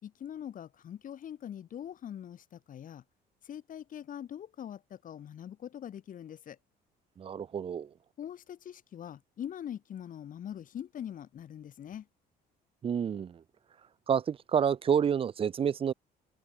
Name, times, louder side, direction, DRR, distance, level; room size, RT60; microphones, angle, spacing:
voice 1, 0.0-3.0 3.4-6.6 8.2-12.1, left 9 dB, 50° left, 4.3 m, -43 dB
voice 2, 7.2-7.9 12.8-13.4 14.1-15.9, right 8 dB, 35° right, 0.6 m, -29 dB
cardioid pair, 110°, 17 cm